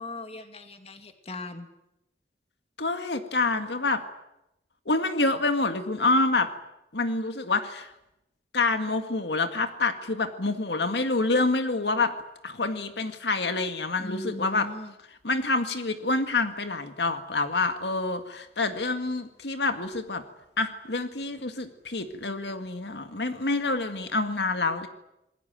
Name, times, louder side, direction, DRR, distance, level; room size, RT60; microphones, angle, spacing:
voice 1, 0.0-1.7 14.0-14.9, left 2 dB, 35° left, 7 dB, 2.4 m, -39 dB
voice 2, 2.8-4.0 4.9-6.5 6.9-7.9 8.5-12.1 12.4-14.7 15.2-20.2 20.6-24.9, left 3 dB, 80° left, 8 dB, 1.9 m, -27 dB
27.0 x 21.0 x 9.2 m, 0.89 s
head